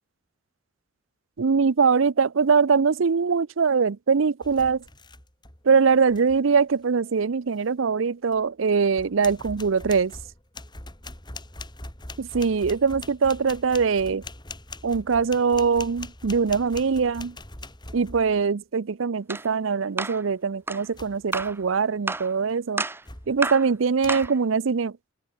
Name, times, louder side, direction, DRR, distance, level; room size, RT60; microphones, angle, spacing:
voice 1, 1.4-4.8 5.6-10.1 12.2-14.2 14.8-17.3 17.9-22.8 23.3-25.1, right 5 dB, 75° right, 0.6 m, -22 dB
sound 1, 4.4-5.6 5.9-6.4 8.3-8.4 8.9-18.5 20.9-21.7 22.1-22.4 23.1-23.5 24.0-24.3, left 2 dB, 20° left, 5.5 m, -42 dB
sound 2, 19.3-19.5 20.0-20.2 20.7-20.8 21.3-21.6 22.1-22.3 22.8-23.0 23.4-23.7 24.1-24.4, right 3 dB, 10° right, 0.8 m, -30 dB
head